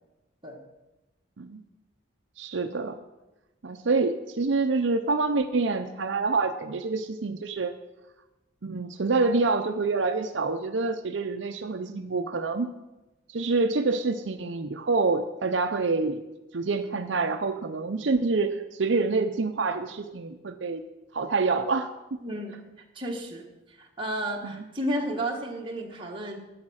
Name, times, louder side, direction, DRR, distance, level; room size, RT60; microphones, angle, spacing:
voice 1, 2.4-3.0 3.6-7.7 8.6-12.7 13.3-16.2 16.5-20.8 21.1-22.2 24.4-24.6, right 3 dB, 70° right, 7 dB, 0.6 m, -27 dB
voice 2, 22.2-22.6 22.9-26.4, right 1 dB, 25° right, 0 dB, 1.6 m, -32 dB
11.5 x 8.7 x 6.4 m, 1.0 s
head